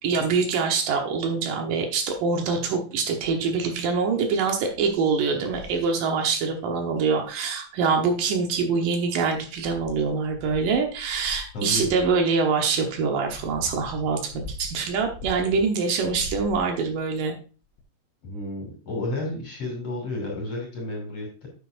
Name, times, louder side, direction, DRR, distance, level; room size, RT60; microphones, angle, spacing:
voice 1, 0.0-14.3 14.6-17.4, right 5 dB, 75° right, 3 dB, 1.9 m, -24 dB
sound 1, 3.2-3.5 4.1-4.2 4.7-4.9 5.4-5.9 7.3-7.4 8.1-8.8 9.3-12.2 12.9-15.7 16.0-17.0 17.8-17.9, left 2 dB, 90° left, 3.7 m, -41 dB
voice 2, 11.5-11.9 18.2-21.5, left 1 dB, 40° left, 0 dB, 3.2 m, -31 dB
9.3 x 8.2 x 2.6 m, 0.35 s
omnidirectional pair, 5.4 m